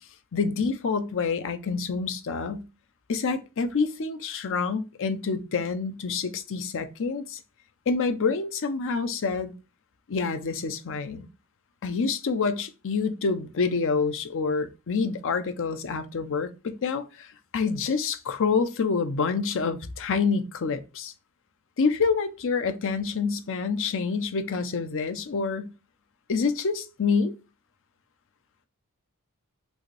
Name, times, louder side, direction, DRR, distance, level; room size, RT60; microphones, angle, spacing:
voice 1, 0.3-2.6 3.1-7.4 7.9-9.5 10.1-11.3 11.8-17.3 17.5-21.1 21.8-25.7 26.3-27.4, left 5 dB, 60° left, 0.6 m, -27 dB
6.2 x 2.6 x 3.2 m
head